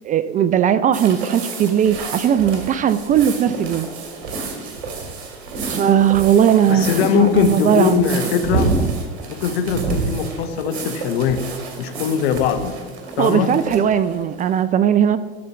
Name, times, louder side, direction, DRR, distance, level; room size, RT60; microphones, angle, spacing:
voice 1, 0.0-3.9 5.7-8.0 13.2-15.2, right 9 dB, 25° right, 14 dB, 0.3 m, -18 dB
sound 1, 0.9-14.6, right 4 dB, 75° right, 2.1 m, -29 dB
voice 2, 6.7-8.8 9.3-11.4 11.8-12.7 13.2-13.6, left 7 dB, 70° left, 9 dB, 1.1 m, -20 dB
11.5 x 4.3 x 6.8 m, 1.4 s
hypercardioid pair, 95°, 32 cm